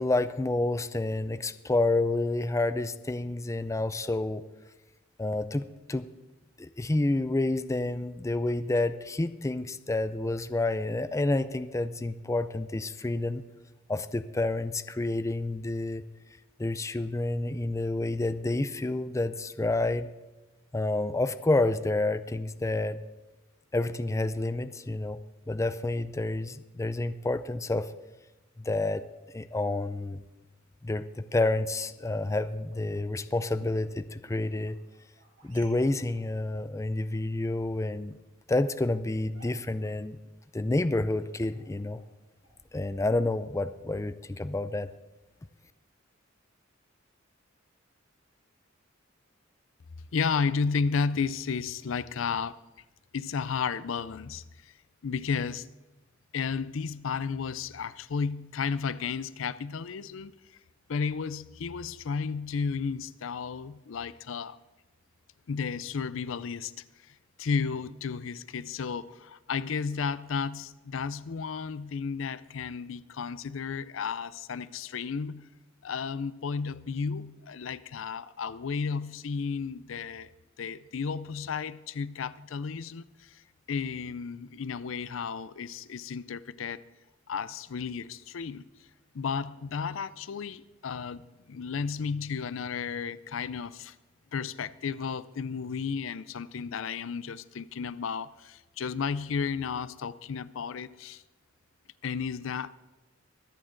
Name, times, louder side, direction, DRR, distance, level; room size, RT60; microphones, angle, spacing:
voice 1, 0.0-4.4 5.2-6.1 6.6-13.4 13.9-16.0 16.6-20.1 20.7-23.0 23.7-25.2 25.5-27.9 28.6-29.0 29.3-30.2 30.8-34.8 35.4-38.2 38.5-40.2 40.5-42.0 42.7-44.9, left 2 dB, 15° left, 0.4 m, -29 dB
sound 1, 31.6-43.5, right 1 dB, 70° right, 5.4 m, -60 dB
voice 2, 50.1-52.6 53.1-54.7 55.0-55.7 56.3-60.3 60.9-64.6 65.5-66.7 67.1-75.5 75.8-80.3 80.6-83.4 83.7-86.8 87.3-88.6 89.1-91.2 91.5-93.9 94.3-101.2 102.0-102.7, left 5 dB, 75° left, 0.5 m, -33 dB
24.0 x 8.7 x 3.8 m
head